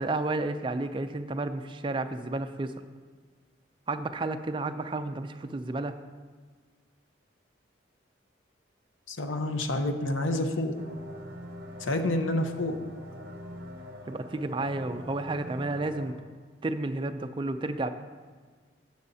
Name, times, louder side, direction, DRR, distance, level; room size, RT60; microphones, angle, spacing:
voice 1, 0.0-2.7 3.9-5.9 14.1-16.1 16.6-17.9, right 2 dB, 25° right, 8 dB, 0.4 m, -31 dB
voice 2, 9.1-10.7 11.8-12.8, left 1 dB, 90° left, 6 dB, 0.9 m, -28 dB
sound 1, 10.7-16.1, equal, 50° right, 1.0 m, -43 dB
16.5 x 6.3 x 2.7 m, 1.5 s
head